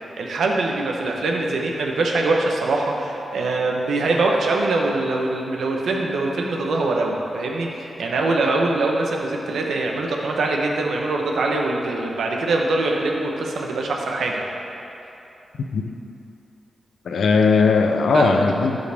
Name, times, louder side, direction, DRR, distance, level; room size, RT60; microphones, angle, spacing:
voice 1, 0.2-14.4 18.1-18.5, right 2 dB, 85° right, 0 dB, 1.0 m, -23 dB
voice 2, 17.0-18.8, left 4 dB, 85° left, 5 dB, 0.6 m, -18 dB
12.5 x 5.4 x 3.5 m, 2.9 s
wide cardioid pair, 105°, 0 cm